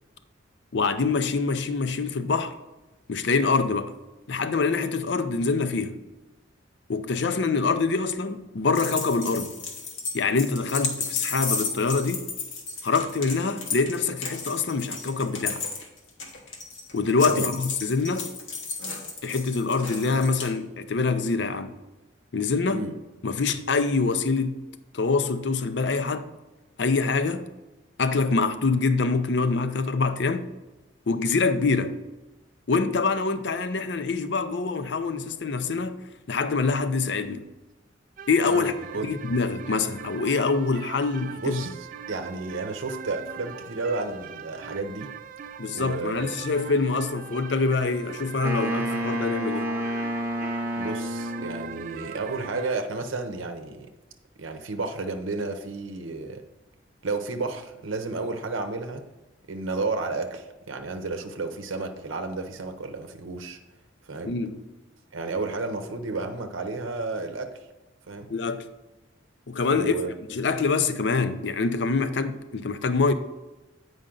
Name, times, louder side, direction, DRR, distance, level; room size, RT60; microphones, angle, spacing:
voice 1, 0.7-2.6 3.1-4.0 4.3-6.0 6.9-9.5 10.1-12.3 12.8-15.6 16.9-18.3 19.2-21.8 22.3-22.9 23.2-24.6 24.9-26.3 26.8-27.5 28.0-30.5 31.1-32.0 32.7-37.5 38.3-38.7 39.0-41.6 45.6-49.8 64.2-64.6 68.3-68.7 69.5-70.0 70.3-73.1, left 4 dB, 60° left, 0.5 m, -25 dB
sound 1, 8.7-20.5, left 4 dB, 85° left, 1.3 m, -33 dB
sound 2, 38.2-52.8, right 7 dB, 45° right, 0.3 m, -41 dB
voice 2, 38.5-39.1 41.4-41.7 42.1-45.1 45.7-46.3 50.8-53.9 54.4-56.4 57.0-59.0 59.5-63.6 64.1-64.3 65.1-67.5 68.1-68.3 69.7-70.1, right 3 dB, 85° right, 0.7 m, -32 dB
Wind instrument woodwind instrument, 48.4-51.9, equal, 15° right, 0.8 m, -29 dB
8.6 x 5.2 x 3.8 m
head